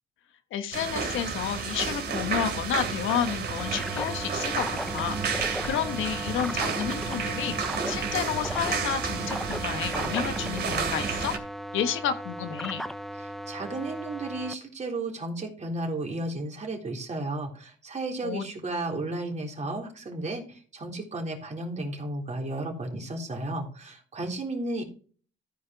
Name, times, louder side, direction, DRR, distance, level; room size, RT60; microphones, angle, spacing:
voice 1, 0.5-5.2 5.6-7.6 7.9-11.3 11.7-12.8 18.2-18.4, left 9 dB, 85° left, 8 dB, 1.2 m, -30 dB
sound 1, 0.7-11.4, right 5 dB, 55° right, 2.7 m, -31 dB
sound 2, 3.6-14.5, equal, ahead, 0.7 m, -37 dB
voice 2, 13.2-24.8, right 2 dB, 35° right, 0 dB, 3.7 m, -33 dB
14.0 x 5.1 x 4.6 m, 0.41 s
cardioid pair, 90°, 20 cm